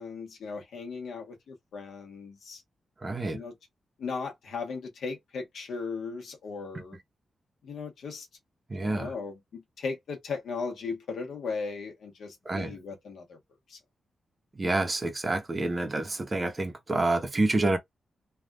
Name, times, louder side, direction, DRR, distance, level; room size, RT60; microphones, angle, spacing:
voice 1, 0.0-2.6 3.3-3.5 4.0-7.0 7.6-8.3 8.8-13.4 13.7-13.8, left 4 dB, 80° left, 1.1 m, -37 dB
voice 2, 3.0-3.4 8.7-9.1 12.5-12.7 14.6-17.8, right 2 dB, 25° right, 0.7 m, -28 dB
3.4 x 2.3 x 2.3 m
wide cardioid pair, 150°, 0 cm